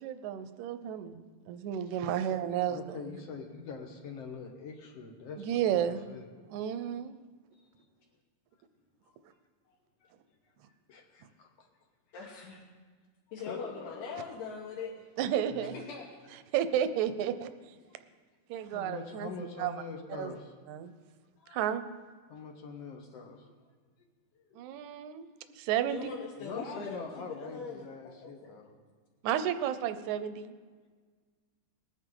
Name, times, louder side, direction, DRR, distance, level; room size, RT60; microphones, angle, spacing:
voice 1, 0.0-3.0 5.4-6.1 6.5-7.1 15.2-15.7 16.5-17.5 18.5-19.3 19.6-19.7 20.2-20.4 20.7-20.9 21.5-21.8 24.6-25.3 25.6-26.1 29.2-30.5, right 10 dB, 75° right, 11 dB, 1.9 m, -32 dB
voice 2, 2.0-5.5 5.7-6.3 7.5-7.9 10.0-10.1 10.9-11.5 13.4-14.3 15.5-15.8 17.8-18.0 18.6-20.5 22.3-23.5 24.4-24.6 26.4-28.7, left 4 dB, 60° left, 2 dB, 1.9 m, -44 dB
voice 3, 12.1-12.6 13.3-15.1 15.7-16.2 21.4-21.6 25.9-28.6, left 5 dB, 85° left, -3 dB, 3.0 m, -42 dB
21.0 x 9.4 x 3.8 m, 1.5 s
omnidirectional pair, 3.7 m